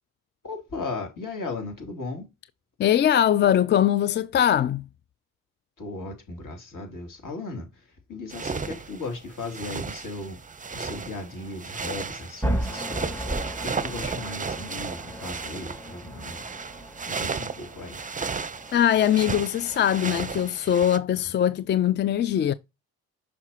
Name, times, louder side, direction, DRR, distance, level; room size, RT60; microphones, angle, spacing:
voice 1, 0.4-2.3 5.8-10.4 10.7-13.3 13.6-16.4 17.0-18.0, left 3 dB, 50° left, 2.9 m, -36 dB
voice 2, 2.8-4.8 18.7-22.5, left 10 dB, 30° left, 0.3 m, -21 dB
sound 1, 8.3-21.0, right 5 dB, 20° right, 0.7 m, -34 dB
sound 2, 12.4-20.4, equal, 5° left, 1.3 m, -36 dB
5.9 x 5.9 x 2.8 m
hypercardioid pair, 50°, 41 cm